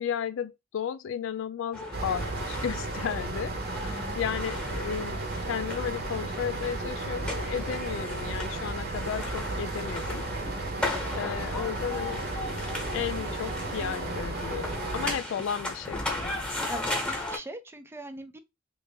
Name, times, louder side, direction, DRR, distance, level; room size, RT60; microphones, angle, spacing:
voice 1, 0.0-10.2 11.1-12.2 12.9-16.4, left 8 dB, 70° left, 0.3 m, -34 dB
sound 1, 1.7-17.4, left 2 dB, 5° left, 1.0 m, -37 dB
sound 2, 1.9-15.2, right 2 dB, 55° right, 0.8 m, -34 dB
voice 2, 3.8-4.2 15.1-15.2 16.7-18.4, right 2 dB, 10° right, 0.4 m, -41 dB
sound 3, 10.3-15.1, equal, 30° left, 0.7 m, -48 dB
3.2 x 2.5 x 3.3 m
head